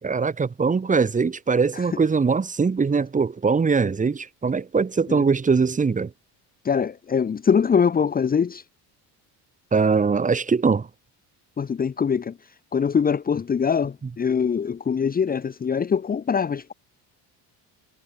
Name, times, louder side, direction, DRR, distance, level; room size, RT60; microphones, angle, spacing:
voice 1, 0.0-6.1 9.7-10.9, right 5 dB, 20° right, 4.4 m, -21 dB
voice 2, 6.6-8.6 11.6-12.4 12.7-16.7, left 6 dB, 25° left, 1.5 m, -23 dB
cardioid pair, 155°, 38 cm